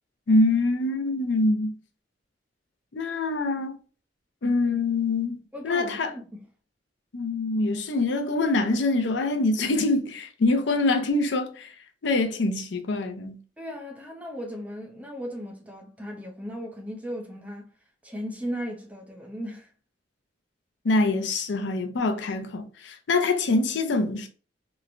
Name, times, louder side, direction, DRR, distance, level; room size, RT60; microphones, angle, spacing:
voice 1, 0.3-1.7 2.9-3.8 4.4-6.1 7.1-11.8 12.0-13.4 20.8-24.3, left 2 dB, 80° left, 0.5 m, -24 dB
voice 2, 5.5-6.4 13.6-17.7 18.0-19.7, equal, 10° right, 0.6 m, -36 dB
3.0 x 2.1 x 2.5 m
head